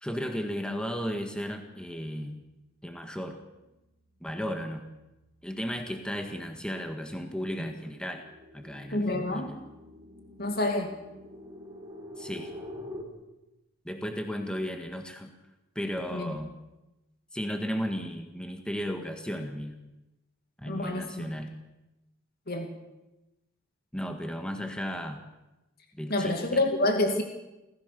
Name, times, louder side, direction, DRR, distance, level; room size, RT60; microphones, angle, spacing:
voice 1, 0.0-2.4 2.8-3.4 4.2-4.9 5.4-8.2 8.5-9.5 12.2-12.5 13.8-15.3 15.7-16.5 17.3-19.8 20.6-21.5 23.9-25.2 26.0-26.6, equal, 5° left, 5 dB, 1.6 m, -34 dB
sound 1, 3.6-3.7 4.1-13.0, left 1 dB, 15° right, 4.0 m, -47 dB
voice 2, 8.9-9.5 10.4-10.9 16.1-16.3 20.7-21.3 22.5-22.7 26.1-27.2, left 2 dB, 45° left, 4 dB, 2.4 m, -28 dB
28.0 x 15.0 x 6.9 m, 0.99 s
head